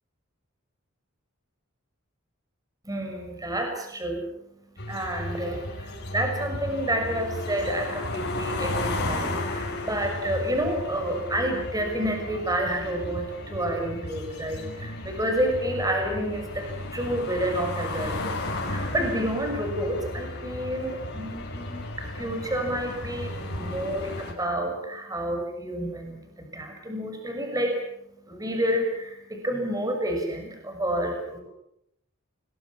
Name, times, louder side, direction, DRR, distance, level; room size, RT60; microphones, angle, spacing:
voice 1, 2.8-31.4, right 1 dB, 15° right, 3 dB, 6.4 m, -29 dB
sound 1, 4.8-24.3, left 2 dB, 50° left, 6.4 m, -34 dB
29.5 x 22.5 x 7.4 m, 0.78 s
head